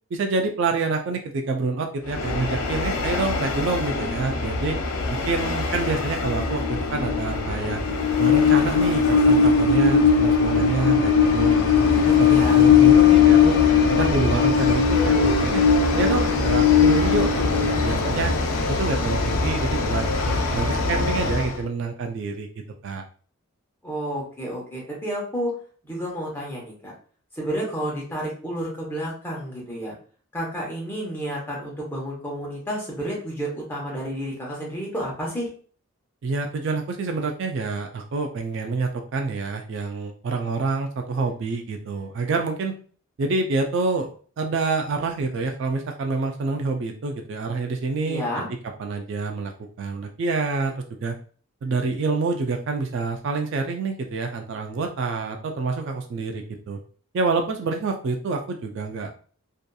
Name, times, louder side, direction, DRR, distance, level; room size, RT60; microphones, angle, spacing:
voice 1, 0.1-4.8 5.3-7.8 8.2-13.6 13.9-15.6 16.0-18.3 18.7-22.5 22.8-23.0 36.2-42.8 43.2-44.1 44.4-48.4 48.8-49.5 49.8-51.2 51.6-56.8 57.1-59.1, right 3 dB, 55° right, 4 dB, 0.3 m, -27 dB
Train, 2.1-21.6, left 6 dB, 80° left, 0.5 m, -20 dB
voice 2, 12.2-12.6 23.8-25.5 25.8-26.9 27.3-29.9 30.3-35.5 48.0-48.5, equal, 10° left, -4 dB, 0.8 m, -30 dB
2.6 x 2.4 x 2.2 m, 0.43 s
head